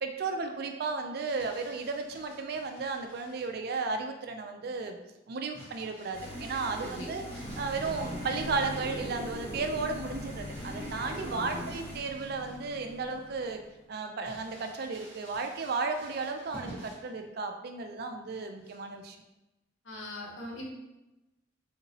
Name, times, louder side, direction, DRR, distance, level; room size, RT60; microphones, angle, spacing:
voice 1, 0.0-5.0 5.3-7.2 7.6-13.6 13.9-19.2, right 4 dB, 55° right, 5 dB, 0.4 m, -34 dB
Crumpling crinkling, 1.2-3.6 5.5-9.1 10.5-12.9 13.3-13.4 14.2-17.2 18.6-19.0, right 1 dB, 10° left, 1.2 m, -51 dB
sound 1, 6.1-12.0, right 1 dB, 10° right, 0.8 m, -42 dB
voice 2, 6.8-7.3 7.8-8.2 11.3-11.7 19.8-20.7, left 1 dB, 90° left, -2 dB, 0.9 m, -42 dB
sound 2, 7.4-13.8, left 1 dB, 40° left, 0.5 m, -43 dB
3.5 x 2.9 x 2.7 m, 0.98 s
head